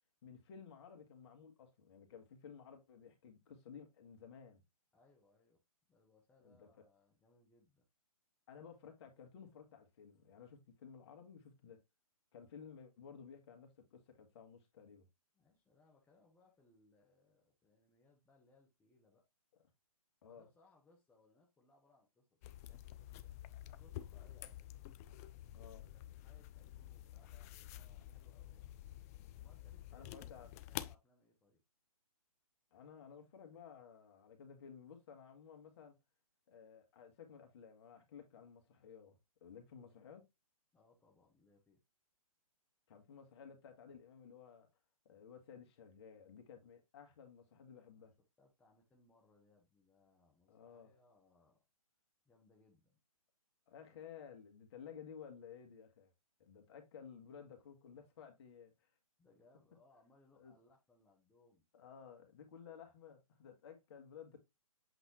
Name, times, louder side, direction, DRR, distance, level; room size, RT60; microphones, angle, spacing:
voice 1, 0.2-4.6 6.4-6.7 8.5-11.8 12.3-15.1 20.2-20.5 25.5-25.8 29.9-30.5 32.7-36.0 36.5-40.2 42.9-44.7 45.1-48.1 50.5-50.9 53.7-56.1 56.4-58.9 60.4-60.5 61.7-64.4, left 7 dB, 45° left, 2.2 m, -55 dB
voice 2, 4.9-5.6 5.9-7.9 15.3-19.2 20.2-24.7 26.2-28.7 29.3-31.6 40.7-41.8 47.9-48.1 48.4-51.6 52.2-53.0 59.2-61.6, left 2 dB, 10° left, 1.2 m, -70 dB
sound 1, 22.4-31.0, left 13 dB, 25° left, 0.4 m, -50 dB
8.0 x 3.9 x 3.2 m
figure-of-eight pair, 135°, 19 cm